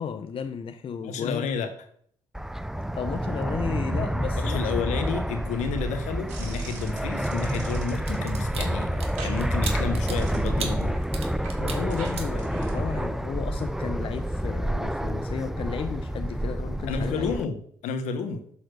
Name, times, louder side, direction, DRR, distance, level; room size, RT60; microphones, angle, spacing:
voice 1, 0.0-1.5 3.0-5.1 11.6-17.4, left 7 dB, 45° left, 7 dB, 0.6 m, -33 dB
voice 2, 1.0-1.7 4.4-10.9 16.9-17.5 17.8-18.4, left 5 dB, 75° left, 7 dB, 1.1 m, -31 dB
Fixed-wing aircraft airplane, 2.3-17.5, right 1 dB, 5° right, 0.4 m, -28 dB
sound 1, 6.3-13.1, right 4 dB, 75° right, 1.8 m, -45 dB
sound 2, 7.9-12.9 13.3-13.5, right 5 dB, 55° right, 1.5 m, -38 dB
6.8 x 4.3 x 6.1 m, 0.62 s
supercardioid pair, 60°, 12 cm